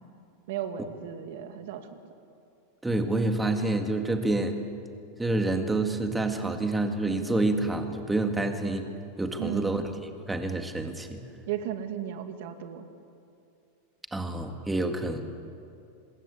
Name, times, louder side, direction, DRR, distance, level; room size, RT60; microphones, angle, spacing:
voice 1, 0.5-2.0 9.4-9.8 11.5-12.9, right 10 dB, 65° right, 7 dB, 2.5 m, -35 dB
voice 2, 2.8-4.6 5.2-8.9 9.2-9.8 10.3-11.3 14.1-15.2, right 2 dB, 5° right, 5 dB, 2.1 m, -28 dB
26.0 x 21.0 x 8.7 m, 2.6 s
supercardioid pair, 145°, 0 cm